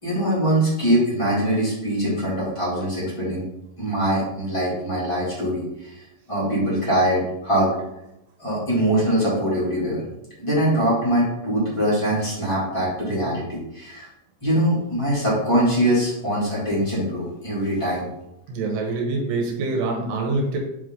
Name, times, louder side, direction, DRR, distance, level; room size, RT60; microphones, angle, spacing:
voice 1, 0.0-3.4 3.8-6.0 6.3-7.7 8.4-10.0 10.4-14.1 14.4-18.0, right 1 dB, 15° left, -8 dB, 1.0 m, -22 dB
voice 2, 18.5-20.6, right 3 dB, 75° right, 0 dB, 2.9 m, -25 dB
7.7 x 3.3 x 3.7 m, 0.86 s
omnidirectional pair, 4.9 m